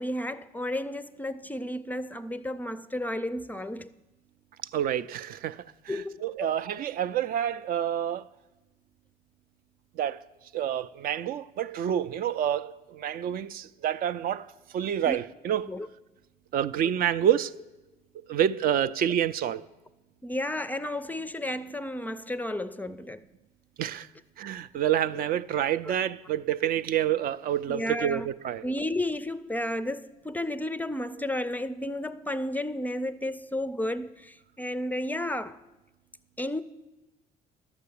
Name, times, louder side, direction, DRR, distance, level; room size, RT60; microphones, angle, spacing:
voice 1, 0.0-3.9 5.9-6.6 15.1-15.2 15.7-15.9 20.2-23.2 25.1-25.2 25.8-26.0 27.7-28.3 28.6-35.6 36.4-36.6, left 1 dB, 10° left, 0.4 m, -32 dB
voice 2, 4.7-8.2 10.0-10.2 10.5-14.5 14.7-15.7 16.5-17.5 18.3-19.6 23.8-24.1 24.4-28.6, right 10 dB, 60° right, 0.4 m, -28 dB
11.5 x 6.7 x 8.3 m
cardioid pair, 110°, 17 cm